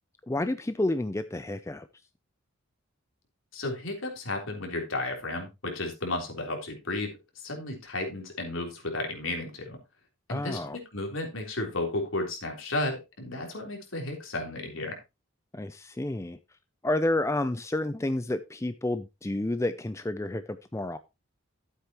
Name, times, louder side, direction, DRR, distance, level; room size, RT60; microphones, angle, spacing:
voice 1, 0.3-1.9 10.3-10.8 15.5-16.4 16.8-21.0, left 1 dB, 15° left, 0.4 m, -30 dB
voice 2, 3.5-9.8 10.3-15.0, left 2 dB, 70° left, 3.6 m, -33 dB
12.5 x 8.3 x 3.0 m
head